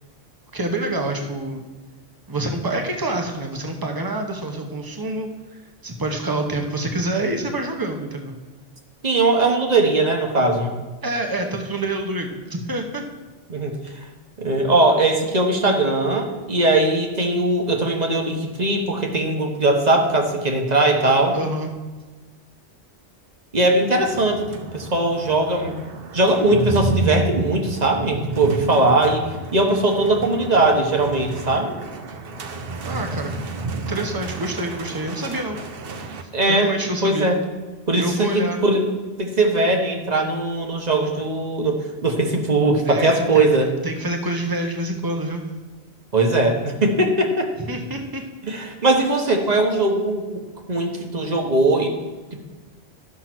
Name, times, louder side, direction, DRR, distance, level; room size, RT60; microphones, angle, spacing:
voice 1, 0.5-1.6 2.3-5.3 5.8-8.4 11.0-13.0 21.3-21.7 32.8-35.6 36.5-37.3 38.0-38.6 42.8-43.4 43.8-45.5 47.7-48.3, right 2 dB, 20° right, 3 dB, 1.0 m, -27 dB
voice 2, 9.0-10.7 13.5-13.7 14.4-21.4 23.5-24.5 24.7-25.7 26.1-29.2 29.5-31.7 36.3-36.7 37.0-37.4 37.9-38.9 39.2-41.8 42.0-43.7 46.1-47.5 48.4-50.2 50.7-51.9, right 2 dB, 40° right, 2 dB, 1.3 m, -20 dB
sound 1, 23.9-36.2, right 2 dB, 60° right, 1.0 m, -30 dB
12.5 x 5.7 x 6.0 m, 1.3 s
omnidirectional pair, 1.2 m